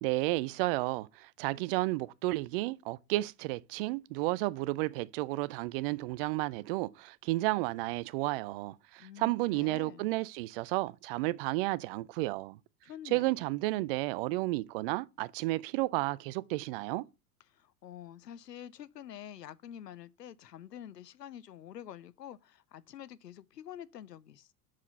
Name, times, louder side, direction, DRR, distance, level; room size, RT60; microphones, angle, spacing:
voice 1, 0.0-12.6 13.1-17.0, right 20 dB, 40° right, 0.4 m, -32 dB
voice 2, 9.0-10.1 12.8-13.3 17.5-24.5, left 10 dB, 90° left, 0.5 m, -47 dB
5.8 x 4.9 x 5.4 m
figure-of-eight pair, 85°, 47 cm